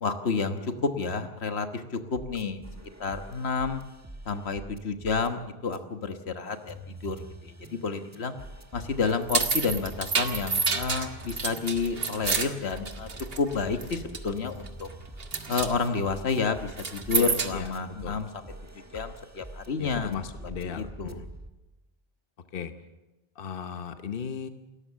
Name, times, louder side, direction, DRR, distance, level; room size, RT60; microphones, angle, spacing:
voice 1, 0.0-2.6 3.0-3.8 4.2-6.7 7.0-7.2 7.4-8.3 8.7-13.1 13.4-14.9 15.5-18.3 18.9-20.1 20.6-21.2, left 4 dB, 85° left, 8 dB, 1.6 m, -30 dB
sound 1, 2.1-5.3 5.7-5.8 6.5-21.5, right 1 dB, 15° right, 1.4 m, -45 dB
sound 2, 9.1-13.5 13.8-14.3 14.7-14.9 15.2-15.7 16.7-17.7, right 4 dB, 65° right, 1.7 m, -29 dB
voice 2, 17.2-17.7 18.0-18.2 19.8-21.3 22.5-22.7 23.4-24.5, left 7 dB, 60° left, 9 dB, 1.2 m, -36 dB
28.0 x 14.0 x 7.4 m, 1.1 s
omnidirectional pair, 1.1 m